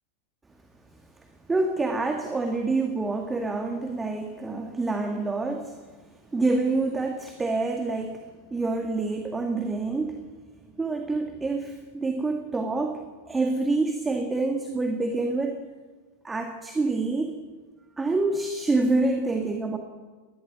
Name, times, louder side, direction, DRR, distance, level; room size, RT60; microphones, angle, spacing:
voice 1, 1.5-5.8 6.3-8.2 8.5-10.2 10.8-15.6 16.2-17.3 18.0-19.8, right 3 dB, 10° right, 5 dB, 2.1 m, -27 dB
20.5 x 20.0 x 8.3 m, 1.4 s
figure-of-eight pair, 90°, 0 cm